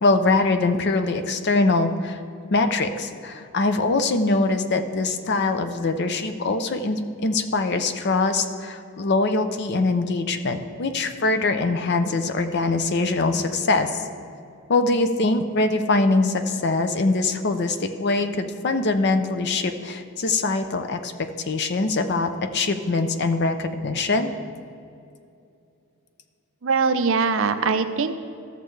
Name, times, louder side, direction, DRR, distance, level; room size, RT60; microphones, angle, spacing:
voice 1, 0.0-2.2 2.5-14.0 14.7-21.1 21.5-24.3, left 3 dB, 50° left, 8 dB, 0.5 m, -23 dB
voice 2, 26.6-28.1, right 5 dB, 60° right, 9 dB, 0.5 m, -22 dB
14.0 x 6.6 x 3.2 m, 2.5 s
head